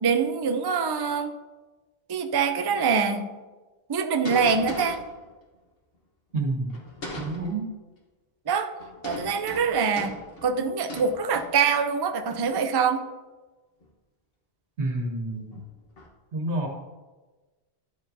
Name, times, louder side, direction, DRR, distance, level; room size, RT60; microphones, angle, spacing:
voice 1, 0.0-1.3 2.1-3.3 3.9-5.0 8.5-8.7 9.0-10.2 10.4-13.0, right 6 dB, 40° right, 8 dB, 0.3 m, -24 dB
sound 1, 4.2-5.3 6.7-7.5 8.8-11.9 12.3-12.6 13.8-13.9 14.8-15.0 15.5-16.1, left 1 dB, 60° left, 1.5 m, -39 dB
voice 2, 6.3-6.8 7.2-7.7 14.8-15.6 16.3-16.7, right 2 dB, 85° right, 1 dB, 1.7 m, -29 dB
12.0 x 7.2 x 2.7 m, 1.2 s
omnidirectional pair, 1.1 m